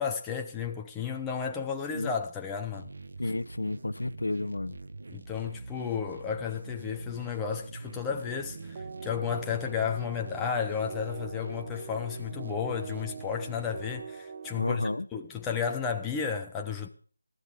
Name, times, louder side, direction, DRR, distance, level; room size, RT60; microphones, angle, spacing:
voice 1, 0.0-2.9 5.1-16.9, left 7 dB, 10° left, 0.7 m, -33 dB
sound 1, 2.7-14.0, right 3 dB, 55° right, 1.0 m, -45 dB
voice 2, 3.2-4.8 14.6-15.1, left 2 dB, 75° left, 0.8 m, -31 dB
sound 2, 8.1-15.0, right 6 dB, 25° right, 0.8 m, -44 dB
20.5 x 13.5 x 3.6 m
figure-of-eight pair, 165°, 0 cm